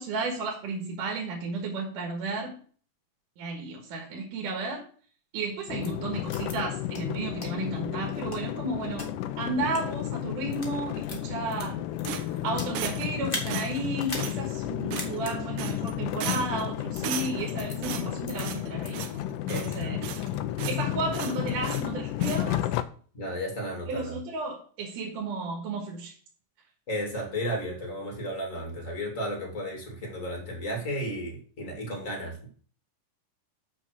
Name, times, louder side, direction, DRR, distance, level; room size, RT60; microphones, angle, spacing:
voice 1, 0.0-2.6 3.4-4.8 5.3-11.9 12.4-19.1 19.5-20.0 20.7-22.6 23.9-26.1, right 3 dB, 75° right, 1 dB, 3.1 m, -33 dB
sound 1, 5.7-22.8, left 13 dB, 80° left, 2.0 m, -32 dB
sound 2, 5.8-5.9 6.3-6.5 6.9-7.0 7.4-7.5 8.1-9.1 9.6-9.8 10.4-10.7 11.0-12.8 13.2-13.5 14.0-14.3 14.6-14.7 15.0-15.3 16.1-16.4 16.9-17.0 17.6-17.8 18.3-18.4 18.8-18.9 19.3-19.9 20.2-20.8, left 2 dB, 45° left, 0.7 m, -39 dB
sound 3, 12.1-13.2 13.5-13.9 14.2-14.4 14.9-15.3 15.6-15.9 16.2-16.6 17.0-17.5 17.8-18.7 18.9-19.2 19.5-20.3 20.6-20.8 21.1-21.9 22.2-22.4, right 10 dB, 90° right, 2.6 m, -36 dB
voice 2, 19.5-20.0 23.1-24.1 26.9-32.5, equal, 25° left, 1 dB, 2.4 m, -34 dB
6.8 x 6.3 x 6.2 m, 0.43 s
omnidirectional pair, 3.9 m